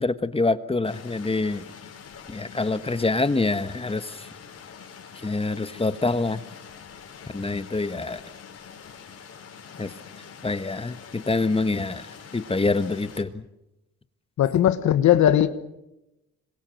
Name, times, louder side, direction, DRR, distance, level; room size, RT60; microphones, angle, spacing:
voice 1, 0.0-1.6 2.3-4.3 5.2-6.4 7.3-8.2 9.8-9.9 10.4-13.4, left 3 dB, 20° left, 1.3 m, -26 dB
sound 1, 0.8-13.2, left 6 dB, 55° left, 4.5 m, -45 dB
voice 2, 14.4-15.5, left 11 dB, 70° left, 1.4 m, -18 dB
26.0 x 23.5 x 7.7 m
cardioid pair, 90°, 30 cm